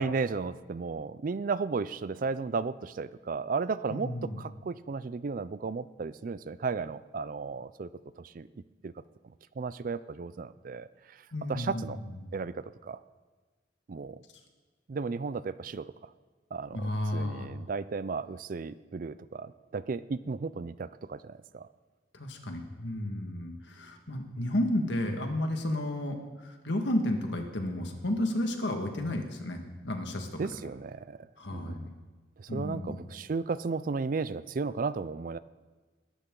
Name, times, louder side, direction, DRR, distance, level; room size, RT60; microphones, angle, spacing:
voice 1, 0.0-7.9 8.2-8.5 8.8-8.9 9.6-11.2 11.5-12.0 12.3-13.0 13.9-14.2 14.9-16.1 16.5-21.7 30.4-31.8 32.4-35.4, right 4 dB, 45° right, 16 dB, 0.4 m, -34 dB
voice 2, 3.9-4.4 11.3-11.9 12.2-12.3 16.7-17.5 22.1-30.6 31.4-31.9 32.5-33.0, left 1 dB, 70° left, 4 dB, 1.8 m, -32 dB
20.5 x 12.5 x 3.8 m, 1.3 s
head